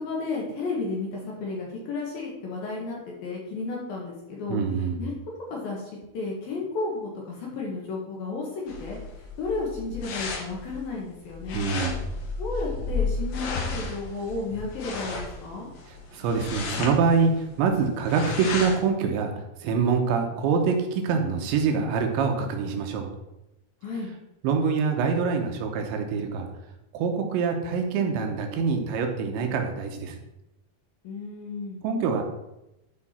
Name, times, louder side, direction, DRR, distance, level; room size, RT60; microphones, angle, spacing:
voice 1, 0.0-4.6 5.0-5.1 5.5-9.0 9.4-11.7 12.4-15.7 23.8-24.1 31.0-31.8, left 3 dB, 65° left, -3 dB, 2.8 m, -33 dB
voice 2, 4.5-5.0 11.5-12.1 15.9-19.3 19.6-23.1 24.4-26.5 26.9-30.2 31.8-32.2, right 5 dB, 80° right, 3 dB, 3.3 m, -25 dB
sound 1, 8.7-18.9, left 4 dB, 85° left, 3.7 m, -33 dB
12.0 x 4.8 x 4.3 m, 0.91 s
omnidirectional pair, 5.2 m